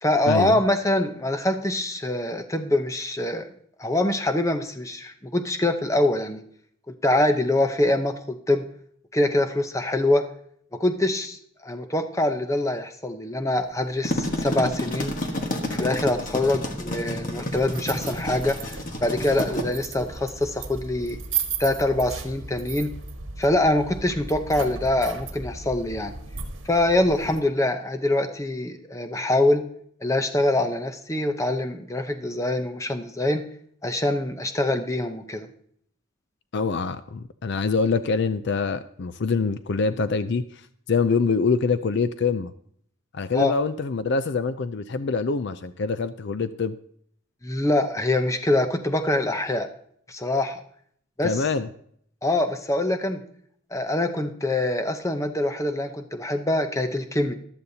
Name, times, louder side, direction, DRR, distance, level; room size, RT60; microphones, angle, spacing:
voice 1, 0.0-3.5 3.8-6.4 6.9-8.6 9.1-10.2 10.8-15.1 15.7-21.2 21.6-22.9 23.4-26.1 26.7-29.6 30.0-33.4 33.8-35.5 43.3-43.5 47.4-49.7 50.1-50.6 51.2-51.5 52.2-53.2 53.7-57.3, left 1 dB, 15° left, 7 dB, 0.7 m, -24 dB
sound 1, 13.8-19.6, left 1 dB, 40° left, 1.4 m, -30 dB
sound 2, 17.3-27.4, right 5 dB, 65° right, 1.4 m, -36 dB
voice 2, 36.5-40.4 40.9-42.5 43.1-46.7 51.2-51.7, left 4 dB, 55° left, 12 dB, 0.5 m, -25 dB
14.5 x 12.0 x 2.8 m, 0.65 s
head